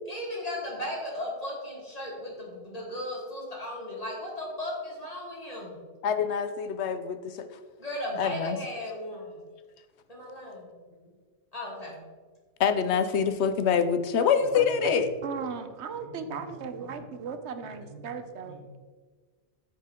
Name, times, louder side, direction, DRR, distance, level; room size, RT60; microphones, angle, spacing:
voice 1, 0.1-5.8 7.8-9.4 10.1-10.7 11.5-12.0 15.9-17.1 17.6-18.0 18.4-18.6, left 1 dB, 35° left, -3 dB, 2.6 m, -37 dB
voice 2, 6.0-7.5 8.2-8.6 12.6-15.1, left 7 dB, 85° left, 10 dB, 0.9 m, -25 dB
voice 3, 14.2-18.8, right 5 dB, 90° right, 9 dB, 1.1 m, -37 dB
9.2 x 7.3 x 3.6 m, 1.5 s
omnidirectional pair, 1.1 m